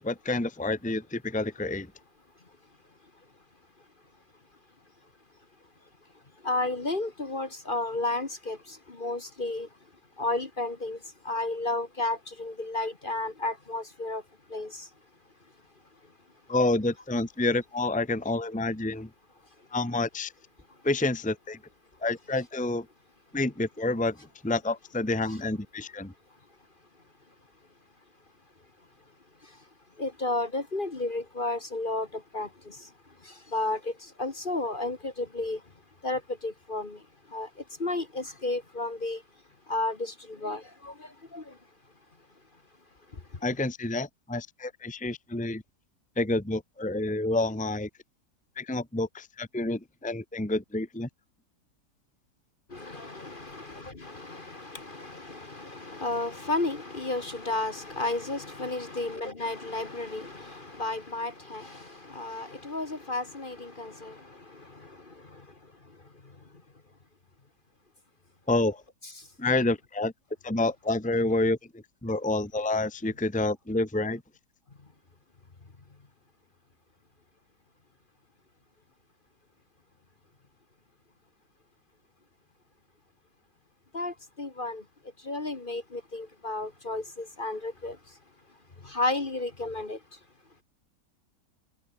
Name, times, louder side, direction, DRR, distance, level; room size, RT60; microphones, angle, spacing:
voice 1, 0.0-1.9 16.5-19.1 19.7-20.3 20.8-21.6 22.0-22.8 23.3-24.2 24.4-26.1 43.4-45.6 46.2-47.9 48.6-51.1 68.5-68.8 69.4-70.1 70.4-71.6 72.0-74.2, left 2 dB, 5° left, 1.4 m, -28 dB
voice 2, 6.4-9.7 10.2-11.0 11.3-14.2 14.5-14.9 30.0-32.8 33.3-35.6 36.0-37.0 37.3-37.5 37.8-39.2 39.7-41.5 52.7-64.9 65.3-65.4 83.9-84.8 85.2-88.0 88.8-90.0, left 2 dB, 30° left, 1.8 m, -32 dB
omnidirectional pair, 1.8 m